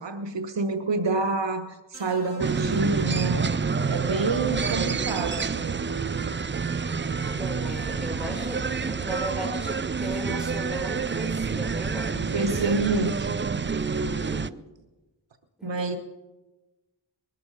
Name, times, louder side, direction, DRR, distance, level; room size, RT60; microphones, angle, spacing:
voice 1, 0.0-3.5 3.9-5.7 12.1-13.4 15.6-16.0, right 3 dB, 80° right, 9 dB, 1.1 m, -28 dB
sound 1, 1.9-4.2 5.5-5.7, equal, 30° left, 3.9 m, -49 dB
sound 2, 2.4-14.5, right 5 dB, 25° right, 0.4 m, -28 dB
voice 2, 7.2-12.8 13.8-14.5 15.6-16.0, equal, ahead, -1 dB, 6.1 m, -37 dB
20.5 x 12.0 x 5.0 m, 1.1 s
wide cardioid pair, 60°, 44 cm